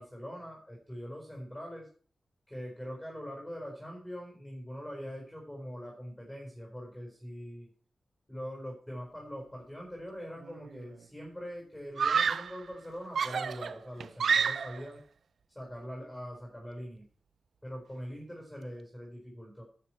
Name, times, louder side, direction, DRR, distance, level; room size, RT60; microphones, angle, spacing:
voice 1, 0.0-1.9 2.5-7.7 8.3-15.0 15.5-17.0 17.6-19.6, equal, 10° left, -1 dB, 4.4 m, -43 dB
Screaming, 10.4-10.9 12.0-12.6 13.2-14.9, right 6 dB, 85° right, 0.4 m, -29 dB
11.0 x 6.9 x 4.5 m, 0.42 s
wide cardioid pair, 105°, 0 cm